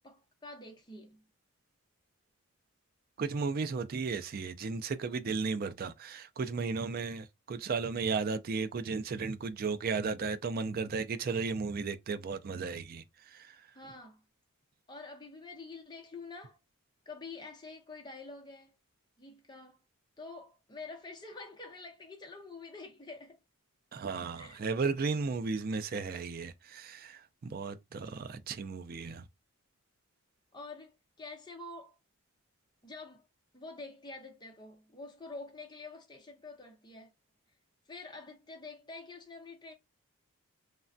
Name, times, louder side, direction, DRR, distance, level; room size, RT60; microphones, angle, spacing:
voice 1, 0.0-1.2 13.7-14.2 14.9-16.6 17.1-18.8 19.2-19.8 20.2-23.4 24.3-24.6 30.5-32.0 32.8-33.3 33.5-37.1 37.9-39.7, left 3 dB, 20° left, 0.7 m, -47 dB
voice 2, 3.2-13.6 23.9-29.3, right 4 dB, 45° right, 0.3 m, -35 dB
3.2 x 2.2 x 2.5 m
head